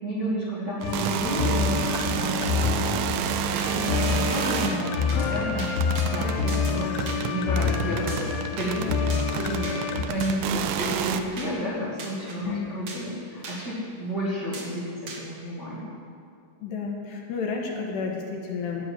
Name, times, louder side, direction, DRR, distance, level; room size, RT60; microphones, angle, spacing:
voice 1, 0.0-8.3 8.5-8.9 9.4-15.9, equal, 30° right, -9 dB, 2.1 m, -32 dB
sound 1, 0.8-10.0, left 5 dB, 90° left, 3.3 m, -27 dB
sound 2, 0.8-11.2, right 9 dB, 85° right, 2.4 m, -30 dB
sound 3, 3.5-3.7 4.0-4.2 4.5-4.8 5.1-5.3 5.6-6.1 6.5-6.7 7.1-7.2 8.1-8.7 9.1-9.3 9.6-9.8 10.2-10.3 10.8-11.1 11.4-11.5 12.0-12.4 12.9-13.1 13.4-13.6 14.5-14.7 15.1-15.2, right 3 dB, 55° right, 1.8 m, -38 dB
voice 2, 16.6-18.9, left 5 dB, 70° left, 0 dB, 3.0 m, -31 dB
12.5 x 6.7 x 9.0 m, 2.3 s
omnidirectional pair, 5.3 m